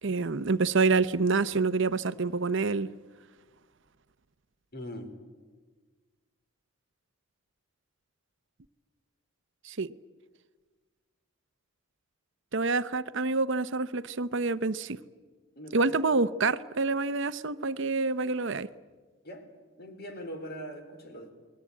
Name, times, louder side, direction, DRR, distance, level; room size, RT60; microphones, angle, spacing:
voice 1, 0.0-2.9 9.6-9.9 12.5-15.0 15.7-18.7, right 3 dB, 60° right, 0.8 m, -27 dB
voice 2, 4.7-5.1 15.6-16.0 19.2-19.5 19.8-21.3, equal, 50° left, 3.6 m, -41 dB
29.5 x 21.0 x 8.5 m
head